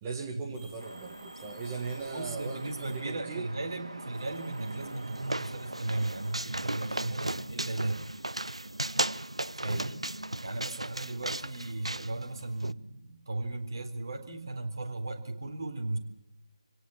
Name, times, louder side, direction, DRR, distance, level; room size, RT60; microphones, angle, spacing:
voice 1, 0.0-3.5 4.6-4.9 7.0-7.2 9.6-9.9, right 4 dB, 15° right, 1 dB, 1.7 m, -39 dB
sound 1, 0.5-3.4 3.9-9.1, left 1 dB, 25° left, 4.2 m, -59 dB
sound 2, 0.8-6.4, right 2 dB, 60° right, 4.7 m, -45 dB
voice 2, 2.0-8.0 9.6-10.0 10.4-16.0, right 2 dB, 45° right, 4 dB, 3.8 m, -36 dB
sound 3, 4.6-12.7, right 1 dB, 75° right, 0.8 m, -36 dB
26.5 x 17.5 x 7.4 m, 0.85 s
figure-of-eight pair, 155°, 3 cm